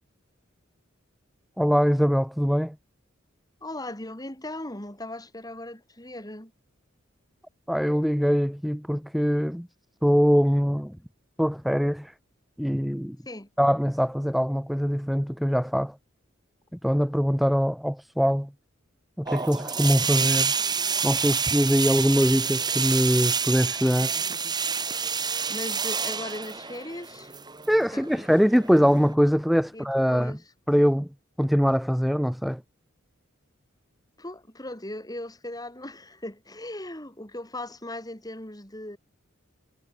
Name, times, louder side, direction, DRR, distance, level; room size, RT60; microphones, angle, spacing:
voice 1, 1.6-2.7 7.7-9.7 10.0-11.0 11.4-12.1 12.6-13.2 13.6-15.9 16.8-18.5 19.2-20.5 21.0-24.1 27.7-30.4 30.7-31.1 31.4-32.6, equal, ahead, 1.0 m, -23 dB
voice 2, 3.6-6.5 13.3-13.5 24.2-24.5 25.5-27.3 27.9-28.4 29.7-30.4 34.2-39.0, left 1 dB, 20° left, 7.2 m, -38 dB
sound 1, 19.3-29.2, right 6 dB, 20° right, 2.7 m, -28 dB
head